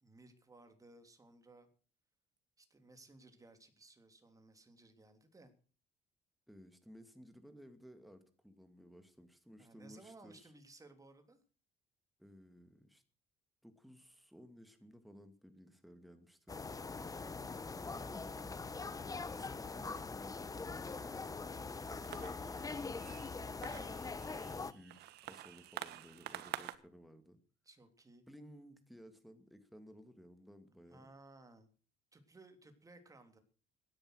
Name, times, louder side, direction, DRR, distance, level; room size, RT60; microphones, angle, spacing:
voice 1, 0.0-1.7 2.6-5.5 9.6-11.4 17.8-18.3 27.6-28.2 30.9-31.7 32.1-33.4, right 2 dB, 20° right, 7 dB, 3.2 m, -60 dB
voice 2, 6.5-10.5 12.2-13.0 13.6-16.8 17.8-18.5 19.0-21.3 21.6-27.4 28.3-31.1, equal, ahead, 8 dB, 2.3 m, -58 dB
sound 1, 16.5-24.7, left 4 dB, 20° left, 1.1 m, -43 dB
sound 2, 21.8-26.8, right 14 dB, 75° right, 1.4 m, -49 dB
16.0 x 10.5 x 6.4 m, 0.41 s
cardioid pair, 110°, 17 cm